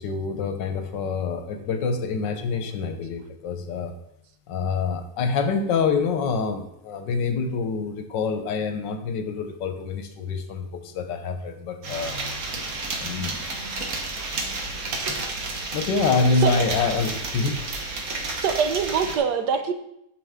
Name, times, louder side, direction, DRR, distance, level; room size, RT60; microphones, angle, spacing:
voice 1, 0.0-3.9 4.5-12.2 13.0-13.4 15.7-17.6, left 4 dB, 85° left, 7 dB, 1.6 m, -26 dB
sound 1, 11.8-19.2, right 3 dB, 55° right, 1.6 m, -31 dB
voice 2, 16.4-16.7 18.4-19.7, right 6 dB, 75° right, 8 dB, 1.3 m, -24 dB
9.2 x 6.6 x 3.6 m, 0.79 s
omnidirectional pair, 1.9 m